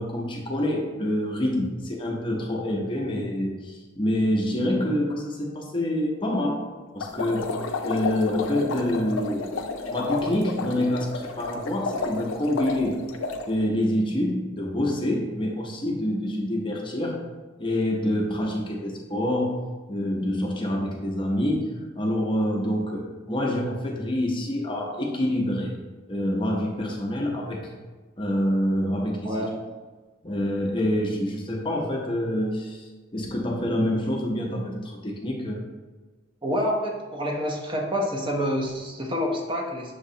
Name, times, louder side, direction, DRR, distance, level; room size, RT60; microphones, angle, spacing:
voice 1, 0.0-6.6 6.9-9.5 9.9-13.0 13.5-17.2 17.6-19.6 19.9-25.8 26.1-27.8 28.2-29.4 30.2-35.6, left 1 dB, 25° left, -1 dB, 0.6 m, -26 dB
sound 1, 7.0-13.5, left 3 dB, 90° left, 0.4 m, -31 dB
voice 2, 29.2-29.6 36.4-39.9, equal, 25° right, 0 dB, 0.6 m, -27 dB
6.3 x 2.9 x 2.7 m, 1.3 s
head